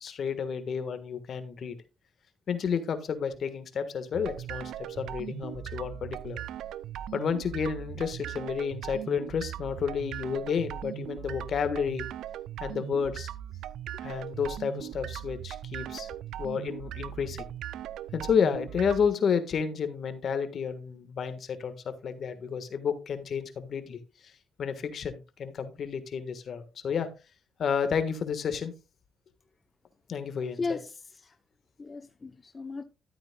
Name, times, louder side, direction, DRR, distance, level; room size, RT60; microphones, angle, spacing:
voice 1, 0.0-1.8 2.5-4.7 5.0-6.4 7.1-12.1 12.6-13.3 14.0-16.1 16.4-17.5 18.1-24.0 24.6-27.1 27.6-28.7 30.1-30.8, left 6 dB, 60° left, 1.5 m, -31 dB
sound 1, 4.1-19.1, right 11 dB, 80° right, 0.4 m, -39 dB
voice 2, 30.5-31.3 31.8-32.8, left 4 dB, 30° left, 0.7 m, -36 dB
12.5 x 8.8 x 2.3 m
cardioid pair, 90°, 0 cm